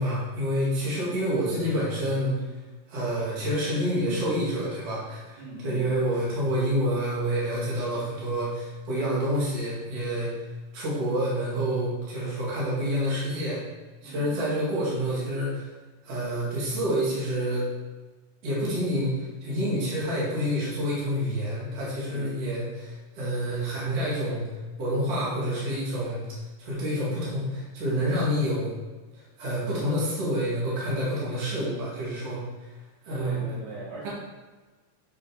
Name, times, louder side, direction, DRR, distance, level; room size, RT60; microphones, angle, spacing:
voice 1, 0.0-2.5 2.9-10.3 10.7-13.6 14.0-15.7 16.0-17.7 18.4-24.4 24.8-26.2 26.6-28.7 29.1-32.4 33.0-33.4 34.0-34.1, equal, 45° right, -7 dB, 3.5 m, -28 dB
voice 2, 5.4-6.2 14.0-14.4 22.0-22.3 33.2-34.1, right 2 dB, 85° right, -6 dB, 4.5 m, -40 dB
7.7 x 6.6 x 5.2 m, 1.3 s
omnidirectional pair, 4.3 m